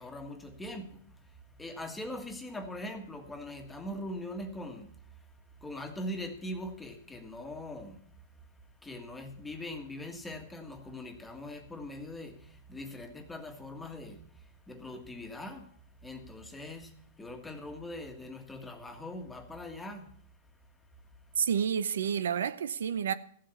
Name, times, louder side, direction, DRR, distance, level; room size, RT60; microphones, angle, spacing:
voice 1, 0.0-5.3 5.6-8.5 8.8-15.8 16.0-20.1, left 1 dB, 5° left, 1.6 m, -42 dB
voice 2, 21.4-23.1, right 8 dB, 85° right, 0.7 m, -29 dB
14.5 x 7.6 x 7.1 m
hypercardioid pair, 140°, 0 cm